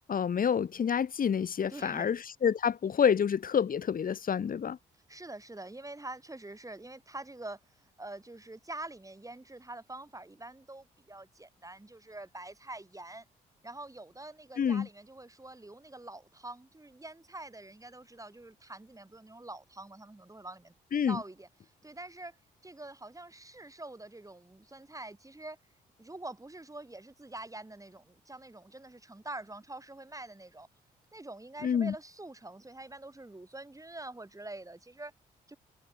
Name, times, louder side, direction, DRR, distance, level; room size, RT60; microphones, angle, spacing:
voice 1, 0.0-4.8 14.6-14.9 20.9-21.2 31.6-31.9, left 7 dB, 45° left, 1.1 m, -28 dB
voice 2, 1.7-2.2 5.1-13.2 13.6-20.7 21.1-21.5 21.8-22.4 22.6-25.6 26.0-30.7 31.1-35.1 35.5-35.6, right 2 dB, 15° right, 6.5 m, -45 dB
hypercardioid pair, 50°, 20 cm